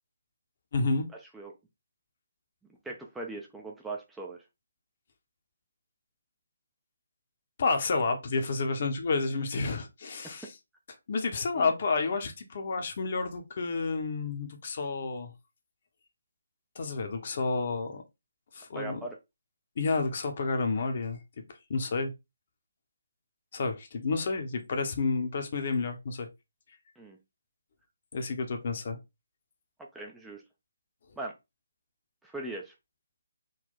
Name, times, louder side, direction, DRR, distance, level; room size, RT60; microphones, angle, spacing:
voice 1, 0.7-1.1 7.6-10.5 11.1-15.3 16.8-18.0 18.5-19.0 19.8-21.2 21.7-22.1 23.5-26.3 28.1-29.0, left 4 dB, 40° left, 0.7 m, -30 dB
voice 2, 2.8-4.4 10.2-10.5 11.5-11.7 18.7-19.2 27.0-27.2 29.9-30.4 31.2-31.3 32.2-32.7, right 2 dB, 5° right, 0.4 m, -39 dB
3.8 x 2.2 x 4.0 m
figure-of-eight pair, 145°, 0 cm